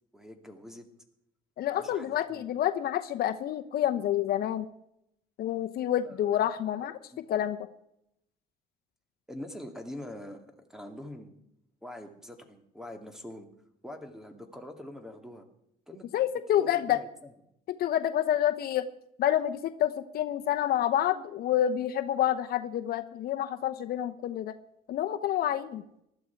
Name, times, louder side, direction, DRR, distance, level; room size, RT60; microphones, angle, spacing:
voice 1, 0.1-0.8 1.7-2.5 6.0-6.3 9.3-11.4 11.8-13.5 13.8-15.5 15.9-16.1 16.6-17.3, left 1 dB, 5° right, 6 dB, 2.2 m, -44 dB
voice 2, 1.6-4.7 5.4-6.9 7.3-7.6 16.1-17.0 17.7-18.9 19.2-24.6 24.9-25.8, left 11 dB, 65° left, 9 dB, 0.9 m, -28 dB
19.0 x 12.5 x 4.6 m, 0.78 s
cardioid pair, 110°, 17 cm